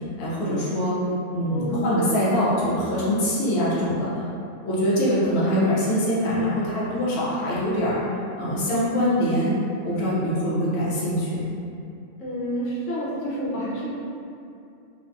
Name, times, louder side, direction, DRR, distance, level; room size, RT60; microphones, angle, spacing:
voice 1, 0.2-1.0 1.3-4.2 4.6-8.0 8.4-9.5 9.8-11.5, equal, 60° left, -8 dB, 0.8 m, -23 dB
voice 2, 1.5-2.2 12.2-13.9, right 1 dB, 85° left, -7 dB, 1.0 m, -28 dB
2.6 x 2.3 x 2.5 m, 2.6 s
omnidirectional pair, 1.3 m